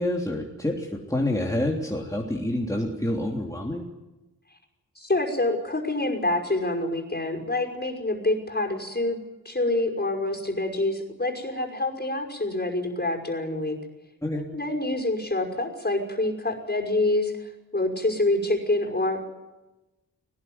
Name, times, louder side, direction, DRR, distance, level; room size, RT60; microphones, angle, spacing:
voice 1, 0.0-3.8 14.2-14.4, left 1 dB, 10° left, -1 dB, 3.4 m, -27 dB
voice 2, 5.0-9.2 9.4-13.8 14.5-19.3, left 2 dB, 30° left, 2 dB, 5.8 m, -26 dB
21.0 x 19.5 x 9.6 m, 1.1 s
cardioid pair, 65°, 34 cm